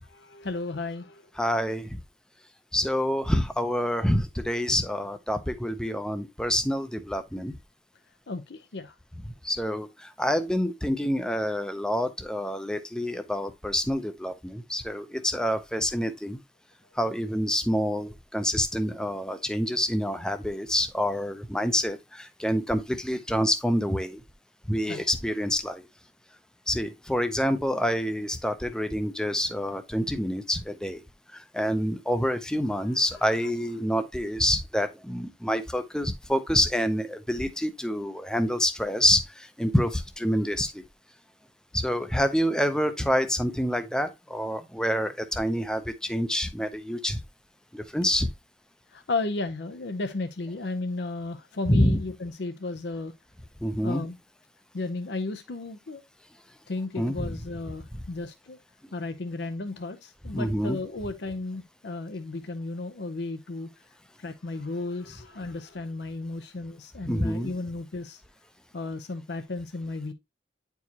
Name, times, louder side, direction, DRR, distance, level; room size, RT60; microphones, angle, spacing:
voice 1, 0.1-1.2 8.3-8.9 24.9-25.0 48.9-53.1 53.8-54.2 54.7-56.0 56.7-58.6 58.9-63.7 64.2-68.2 68.7-70.1, left 3 dB, 65° left, 0.6 m, -34 dB
voice 2, 1.4-2.0 2.7-7.5 9.4-16.4 17.0-24.2 24.7-25.9 26.7-31.0 31.3-40.8 41.7-47.2 47.7-48.3 51.7-52.0 53.6-54.0 57.0-57.4 60.3-60.8 67.0-67.5, equal, 5° left, 0.5 m, -27 dB
9.5 x 4.6 x 2.8 m
head